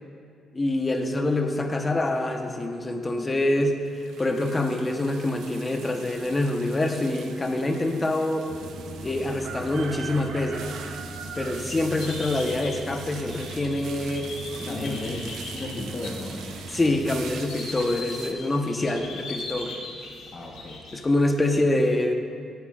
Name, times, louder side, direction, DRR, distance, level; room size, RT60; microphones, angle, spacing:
voice 1, 0.5-3.8 4.2-8.5 9.0-10.7 11.4-14.3 14.6-15.1 16.7-19.8 20.9-22.1, left 2 dB, 25° left, 4 dB, 1.0 m, -25 dB
sound 1, 3.8-18.3, right 6 dB, 75° right, 0.7 m, -42 dB
sound 2, 8.5-17.4, right 2 dB, 55° right, 1.1 m, -40 dB
sound 3, 12.0-21.0, left 3 dB, 85° left, 2.6 m, -40 dB
voice 2, 14.6-16.4 20.3-20.8, left 2 dB, 45° left, -3 dB, 1.2 m, -35 dB
17.0 x 9.3 x 2.5 m, 2.3 s
cardioid pair, 90°, 0 cm